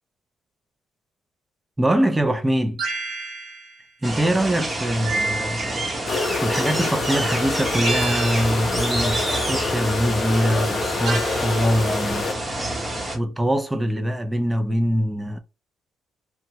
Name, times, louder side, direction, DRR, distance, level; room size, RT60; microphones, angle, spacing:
voice 1, 1.8-2.8 4.0-5.7 6.4-12.3 13.1-15.4, equal, 10° right, 0.5 m, -23 dB
sound 1, 2.8-3.7 5.0-6.0 7.8-8.7 11.1-11.6, right 3 dB, 65° right, 1.0 m, -29 dB
sound 2, 4.0-13.2, right 1 dB, 30° right, 0.9 m, -28 dB
sound 3, 6.1-12.3, left 4 dB, 50° left, 0.5 m, -27 dB
2.9 x 2.1 x 2.8 m
cardioid pair, 90°, 0 cm